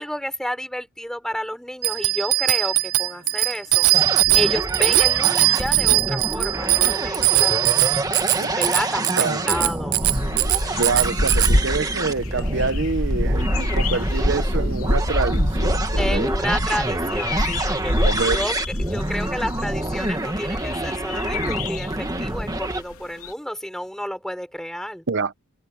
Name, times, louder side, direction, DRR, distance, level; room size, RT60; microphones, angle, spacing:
voice 1, 0.0-3.9 4.3-8.0 8.5-10.0 16.0-25.0, equal, ahead, 5.5 m, -30 dB
Bicycle bell, 1.8-11.5, right 18 dB, 75° right, 0.4 m, -20 dB
sound 1, 3.9-22.8, right 2 dB, 15° right, 1.6 m, -27 dB
voice 2, 9.2-9.5 10.8-16.3 18.0-18.4 25.1-25.3, right 4 dB, 55° right, 0.8 m, -26 dB
sound 2, 10.0-22.9 23.2-23.3, left 1 dB, 70° left, 3.6 m, -25 dB
head